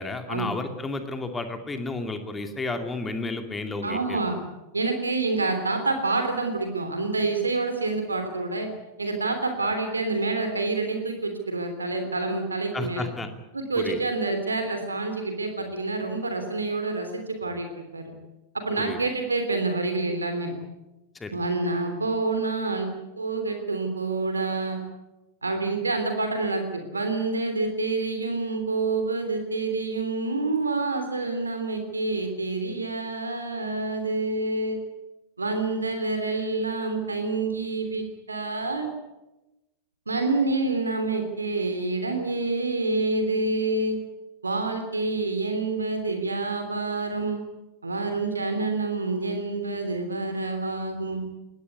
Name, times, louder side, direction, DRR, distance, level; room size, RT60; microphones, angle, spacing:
voice 1, 0.0-4.2 12.7-13.3 13.8-14.0 18.8-19.0 21.1-21.4, left 2 dB, 15° left, 6 dB, 2.5 m, -32 dB
voice 2, 3.8-4.4 4.7-8.7 9.0-13.1 13.5-18.1 18.5-20.5 21.3-22.9 23.2-24.8 25.4-34.8 35.4-38.9 40.1-44.0 44.4-47.4 47.8-51.2, right 3 dB, 80° right, 6 dB, 3.2 m, -27 dB
21.5 x 17.5 x 9.7 m, 1.0 s
figure-of-eight pair, 90°, 0 cm